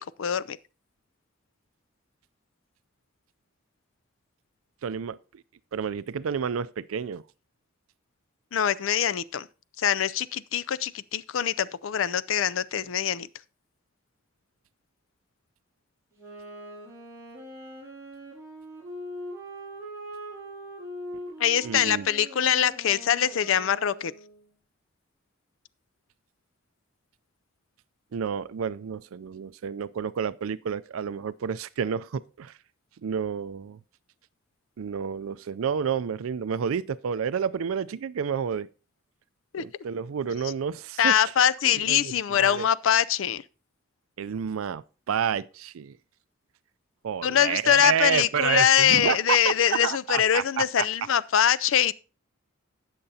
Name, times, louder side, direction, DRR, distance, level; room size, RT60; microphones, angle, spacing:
voice 1, 0.2-0.6 8.5-9.5 9.8-13.3 21.4-24.1 39.5-39.6 41.0-43.4 47.2-51.9, left 9 dB, 70° left, 0.4 m, -23 dB
voice 2, 4.8-5.2 5.7-7.2 21.6-22.1 28.1-32.5 33.0-33.8 34.8-38.7 39.6-41.3 41.6-42.7 44.2-46.0 47.0-50.9, right 7 dB, 85° right, 0.4 m, -30 dB
Wind instrument woodwind instrument, 16.1-24.5, equal, 15° right, 6.7 m, -42 dB
18.5 x 6.7 x 2.8 m
head